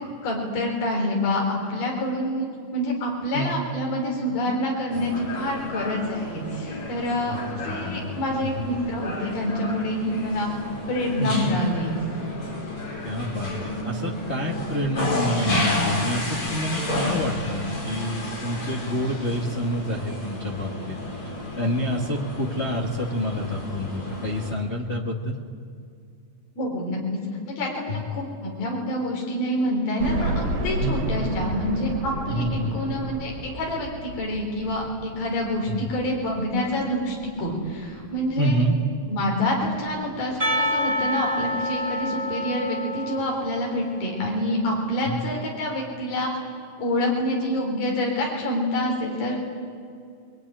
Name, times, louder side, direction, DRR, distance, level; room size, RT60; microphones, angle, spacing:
voice 1, 0.0-2.5 2.7-7.4 7.6-10.5 10.9-11.9 26.6-27.0 27.5-38.6 39.1-46.3 46.8-49.4, left 1 dB, 85° left, -1 dB, 5.8 m, -27 dB
sound 1, 4.9-24.5, left 1 dB, 35° left, 5.2 m, -31 dB
voice 2, 7.2-8.1 8.4-8.7 11.2-11.5 13.0-21.0 21.6-25.4 27.9-28.1 30.8-31.0 32.3-33.0 35.6-35.9 38.4-38.7 45.0-45.2, equal, 65° left, -1 dB, 0.6 m, -28 dB
sound 2, 30.0-38.9 39.4-39.5 39.9-40.0 41.1-41.2 41.5-41.6, right 1 dB, 60° right, 3.4 m, -32 dB
Percussion, 40.4-44.3, equal, 20° right, 5.8 m, -28 dB
25.5 x 22.0 x 9.9 m, 2.4 s
omnidirectional pair, 4.2 m